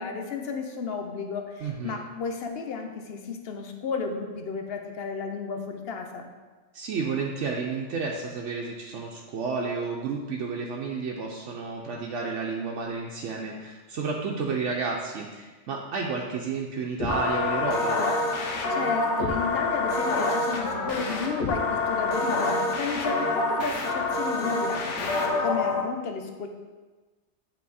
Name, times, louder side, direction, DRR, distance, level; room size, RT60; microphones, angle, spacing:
voice 1, 0.0-6.3 18.7-26.5, left 5 dB, 60° left, 5 dB, 0.9 m, -33 dB
voice 2, 1.6-2.0 6.7-18.0, right 4 dB, 85° right, -1 dB, 1.0 m, -31 dB
sound 1, 17.0-25.8, left 3 dB, 75° left, 1.2 m, -27 dB
8.4 x 4.1 x 4.2 m, 1.3 s
omnidirectional pair, 1.2 m